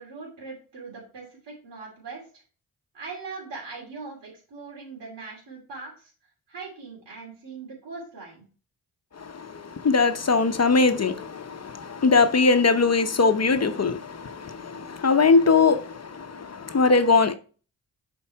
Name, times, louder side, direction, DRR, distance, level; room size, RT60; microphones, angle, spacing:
voice 1, 0.0-2.2 2.9-6.1 6.5-8.4, right 4 dB, 80° right, 2.8 m, -40 dB
voice 2, 9.2-17.3, left 4 dB, 40° left, 0.9 m, -21 dB
7.3 x 4.6 x 4.7 m
cardioid pair, 55°, 41 cm